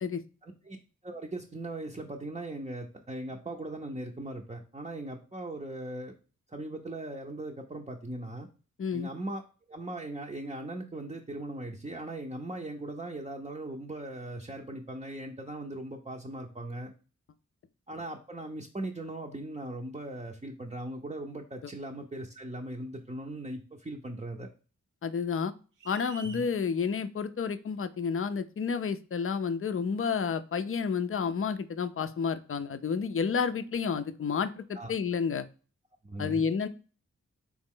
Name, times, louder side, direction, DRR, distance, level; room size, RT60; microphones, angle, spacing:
voice 1, 0.4-0.8 1.0-6.2 6.5-8.5 8.9-9.4 9.7-16.9 17.9-24.5 26.2-26.5 34.7-34.9 36.0-36.4, right 1 dB, 20° right, 0 dB, 0.6 m, -39 dB
voice 2, 8.8-9.1 25.0-25.5 25.9-35.4 36.2-36.7, left 6 dB, 45° left, 11 dB, 0.5 m, -30 dB
sound 1, 25.8-26.5, right 5 dB, 85° right, 0.6 m, -47 dB
4.0 x 3.1 x 3.7 m, 0.36 s
cardioid pair, 45°, 31 cm